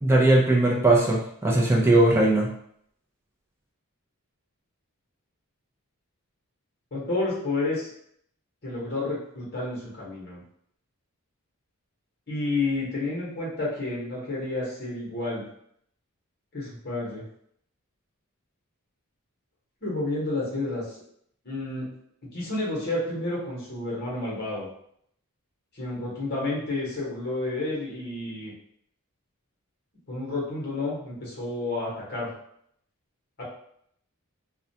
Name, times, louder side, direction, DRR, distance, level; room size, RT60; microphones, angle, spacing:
voice 1, 0.0-2.5, right 2 dB, 10° right, -3 dB, 0.4 m, -19 dB
voice 2, 6.9-7.9 8.6-10.4 12.3-15.4 16.5-17.2 19.8-21.0 21.4-21.9 22.2-24.7 25.7-28.5 30.1-32.3 33.4-33.5, left 2 dB, 45° left, -5 dB, 1.0 m, -30 dB
2.3 x 2.2 x 2.7 m, 0.69 s
head